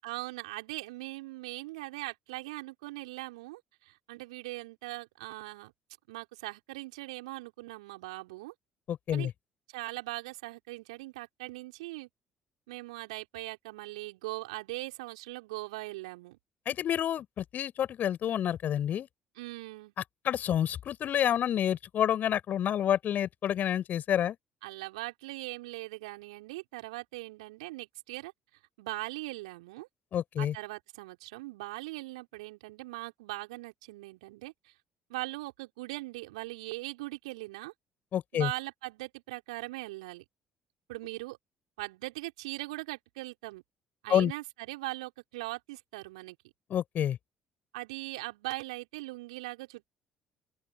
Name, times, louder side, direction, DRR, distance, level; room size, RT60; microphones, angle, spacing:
voice 1, 0.0-5.7 6.1-8.5 9.1-9.3 9.7-12.1 12.7-16.4 19.4-19.9 24.6-28.3 28.8-29.9 30.4-34.7 35.1-37.7 38.3-40.2 40.9-41.4 41.8-43.6 44.0-46.4 47.7-49.9, right 21 dB, 75° right, 5.6 m, -40 dB
voice 2, 8.9-9.3 16.7-19.1 20.2-24.4 30.1-30.5 38.1-38.5 44.1-44.3 46.7-47.2, left 10 dB, 50° left, 7.3 m, -28 dB
open air
figure-of-eight pair, 50°, 4 cm